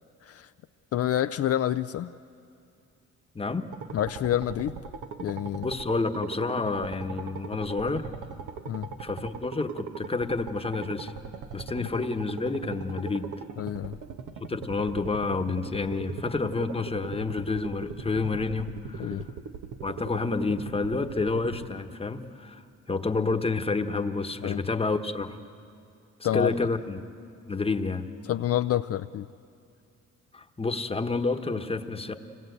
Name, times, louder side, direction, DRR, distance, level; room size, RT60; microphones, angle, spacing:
voice 1, 0.9-2.1 3.9-4.8 5.2-5.7 8.7-8.9 11.8-11.9 13.6-14.0 19.0-19.3 24.4-24.6 26.2-26.5 28.2-29.3, left 11 dB, 50° left, 10 dB, 0.5 m, -28 dB
voice 2, 3.3-3.7 5.6-8.1 9.0-11.1 11.5-13.3 14.5-19.2 19.8-22.6 22.9-25.4 26.3-27.0 27.5-28.1 30.3-32.1, left 3 dB, 20° left, 7 dB, 1.2 m, -29 dB
sound 1, 3.7-21.6, right 6 dB, 80° right, 1.3 m, -39 dB
25.5 x 19.0 x 8.0 m, 2.5 s
cardioid pair, 90°, 30 cm